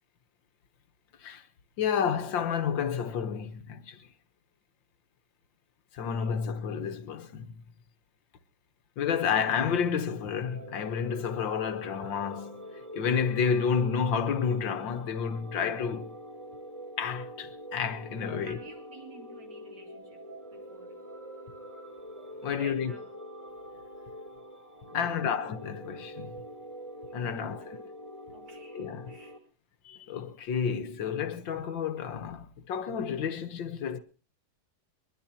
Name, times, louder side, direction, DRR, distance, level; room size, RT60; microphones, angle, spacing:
voice 1, 1.8-4.0 5.9-7.6 9.0-16.2 17.0-18.6 22.4-22.9 24.9-26.4 27.1-27.6 28.7-29.1 29.9-34.0, left 7 dB, 75° left, 1.8 m, -30 dB
voice 2, 6.0-6.4 18.2-21.0 22.1-23.1 24.0-24.1 24.9-25.3 26.4-26.7 27.1-27.8 28.3-29.5, right 4 dB, 55° right, 3.7 m, -52 dB
sound 1, 10.1-29.4, equal, 15° right, 3.3 m, -45 dB
22.0 x 21.5 x 2.9 m
omnidirectional pair, 2.1 m